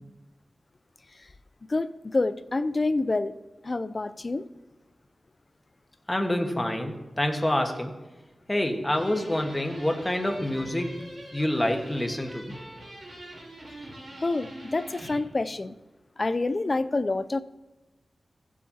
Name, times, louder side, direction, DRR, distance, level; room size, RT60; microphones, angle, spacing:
voice 1, 1.7-3.3 3.6-4.4 14.2-15.7 16.2-17.4, left 2 dB, 45° left, 13 dB, 0.4 m, -27 dB
voice 2, 6.1-7.9 8.5-10.9 11.3-12.4, left 1 dB, 15° left, 4 dB, 1.4 m, -27 dB
sound 1, 8.9-15.2, right 1 dB, 55° right, 3.6 m, -44 dB
15.5 x 7.4 x 2.8 m, 1.1 s
cardioid pair, 50°, 0 cm